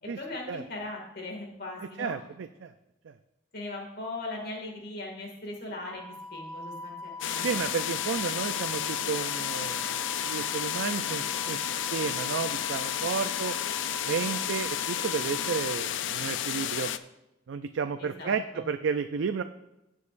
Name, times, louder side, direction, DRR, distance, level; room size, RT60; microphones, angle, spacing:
voice 1, 0.0-2.1 3.5-7.4 18.0-18.6, left 2 dB, 55° left, 0 dB, 2.1 m, -39 dB
voice 2, 2.0-2.7 3.0-3.2 7.4-13.6 14.0-16.9 17.5-19.4, right 6 dB, 75° right, 9 dB, 0.4 m, -32 dB
Wind instrument woodwind instrument, 5.9-15.8, left 1 dB, 15° left, 1.1 m, -41 dB
sound 1, 7.2-17.0, left 10 dB, 70° left, 0.4 m, -32 dB
16.5 x 6.5 x 2.5 m, 0.92 s
head